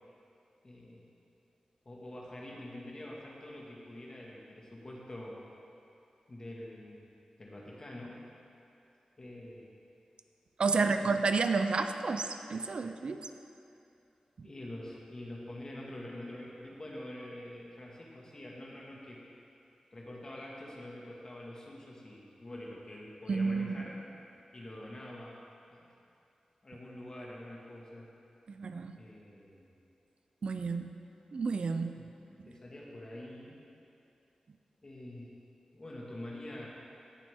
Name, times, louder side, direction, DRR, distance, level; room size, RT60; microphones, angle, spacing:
voice 1, 0.6-1.1 1.9-5.4 6.3-8.2 9.2-9.7 10.8-11.2 14.4-19.2 19.9-24.0 24.5-25.4 25.7-25.9 26.6-28.1 29.0-29.7 32.0-32.1 32.5-33.6 34.8-35.3 35.7-36.7, left 1 dB, 35° left, -3 dB, 1.8 m, -46 dB
voice 2, 10.6-13.3 14.4-14.5 23.3-23.8 28.6-29.0 30.4-30.9 31.3-32.0, right 4 dB, 55° right, 8 dB, 0.4 m, -30 dB
17.5 x 7.2 x 3.6 m, 2.7 s
wide cardioid pair, 125°, 2 cm